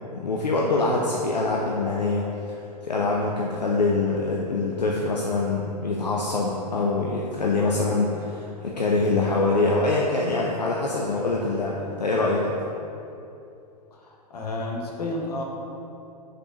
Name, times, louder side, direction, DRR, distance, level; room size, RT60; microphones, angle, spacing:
voice 1, 0.1-2.6 2.8-12.6, left 3 dB, 90° left, -2 dB, 0.6 m, -24 dB
voice 2, 13.9-15.4, left 2 dB, 70° left, -1 dB, 1.2 m, -31 dB
5.1 x 4.4 x 4.9 m, 2.7 s
figure-of-eight pair, 105°, 21 cm